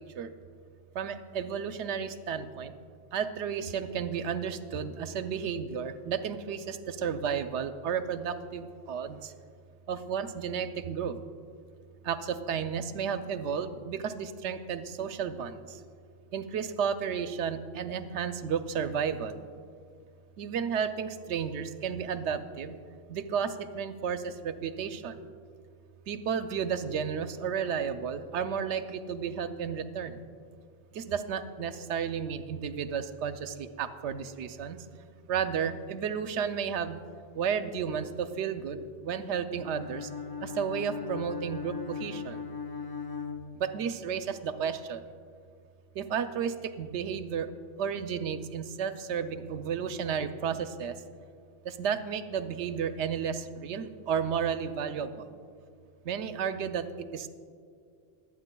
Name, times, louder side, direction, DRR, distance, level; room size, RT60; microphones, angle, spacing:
voice 1, 0.9-2.7 3.1-9.3 9.9-11.2 12.0-15.8 16.3-19.4 20.4-22.8 23.1-25.3 26.1-30.2 30.9-34.8 35.3-37.0 37.3-40.1 40.4-42.4 43.6-45.0 46.0-47.5 47.8-50.9 51.7-55.3 56.0-56.9 57.1-57.3, right 7 dB, 75° right, 10 dB, 0.9 m, -32 dB
Bowed string instrument, 39.5-44.1, left 5 dB, 25° left, 0.6 m, -39 dB
23.5 x 9.0 x 2.2 m, 2.2 s
omnidirectional pair, 1.2 m